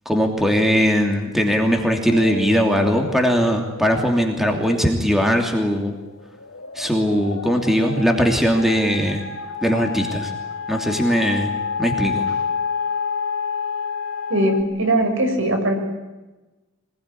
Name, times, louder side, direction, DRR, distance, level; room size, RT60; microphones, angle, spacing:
voice 1, 0.0-5.9 6.7-9.2 9.6-10.3 10.7-11.5 11.8-12.2, equal, ahead, 2 dB, 2.8 m, -19 dB
sound 1, 2.1-5.9 6.3-14.6, left 5 dB, 75° left, 3.6 m, -29 dB
voice 2, 14.3-15.8, right 1 dB, 65° right, 4 dB, 6.6 m, -20 dB
25.0 x 21.0 x 9.9 m, 1.1 s
head